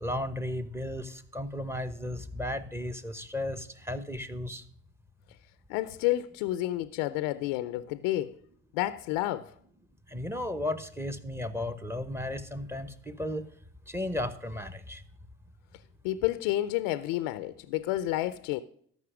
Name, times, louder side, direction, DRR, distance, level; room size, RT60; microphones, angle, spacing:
voice 1, 0.0-4.6 10.1-13.5 13.9-15.0, left 1 dB, 5° right, 0.9 m, -34 dB
voice 2, 5.7-8.3 8.7-9.5 16.0-18.6, left 15 dB, 85° left, 0.6 m, -30 dB
13.5 x 5.6 x 4.9 m
supercardioid pair, 95°, 34 cm